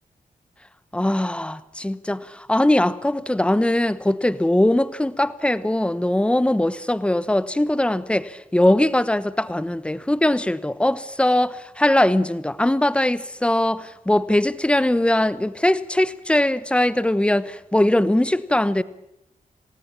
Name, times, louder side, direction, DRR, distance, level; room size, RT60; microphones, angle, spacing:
voice 1, 0.9-18.8, left 1 dB, 5° left, 1.0 m, -21 dB
27.0 x 18.5 x 8.9 m
wide cardioid pair, 175°, 14 cm